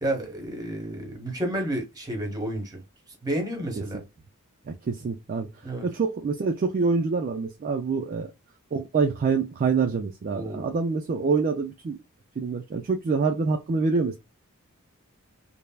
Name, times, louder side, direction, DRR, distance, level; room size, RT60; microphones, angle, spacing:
voice 1, 0.0-2.8 3.2-4.0 5.6-5.9 10.3-10.8, right 1 dB, 15° right, 0.9 m, -31 dB
voice 2, 4.7-5.5 5.8-8.3 8.7-12.0 12.4-14.2, right 4 dB, 40° right, 0.3 m, -26 dB
3.2 x 2.0 x 2.2 m
head